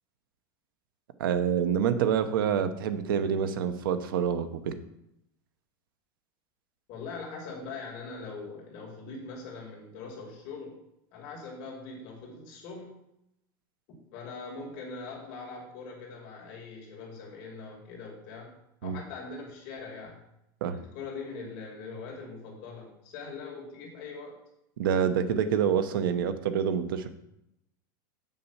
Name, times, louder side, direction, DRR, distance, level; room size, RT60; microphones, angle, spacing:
voice 1, 1.2-4.8 18.8-19.0 20.6-20.8 24.8-27.1, right 8 dB, 90° right, 11 dB, 1.0 m, -27 dB
voice 2, 6.9-10.8 11.1-12.9 14.1-18.5 18.8-20.2 20.7-24.4, left 4 dB, 45° left, -2 dB, 2.6 m, -42 dB
7.5 x 5.5 x 7.2 m, 0.81 s
supercardioid pair, 170°, 11 cm